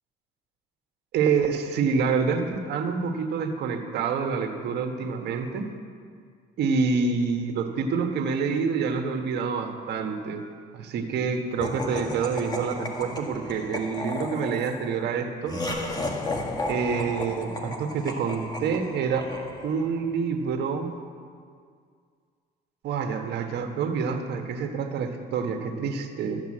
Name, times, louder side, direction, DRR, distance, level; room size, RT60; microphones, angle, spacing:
voice 1, 1.1-5.7 6.6-10.4 10.7-15.6 16.7-19.3 19.6-20.9 22.8-26.4, right 5 dB, 70° right, 4 dB, 1.5 m, -27 dB
Laughter, 11.6-20.0, left 2 dB, 20° left, 1.7 m, -34 dB
13.5 x 8.1 x 7.7 m, 2.1 s
cardioid pair, 95°, 18 cm